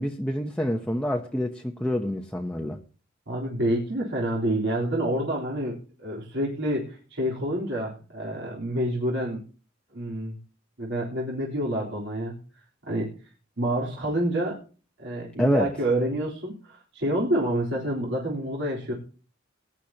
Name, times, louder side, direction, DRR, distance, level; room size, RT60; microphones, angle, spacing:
voice 1, 0.0-2.8 15.4-15.7, equal, 5° left, 1 dB, 0.9 m, -27 dB
voice 2, 3.3-9.4 9.9-10.4 10.8-12.3 12.8-13.1 13.6-14.6 15.0-18.9, right 1 dB, 65° right, -3 dB, 3.8 m, -28 dB
20.5 x 10.0 x 2.9 m, 0.37 s
head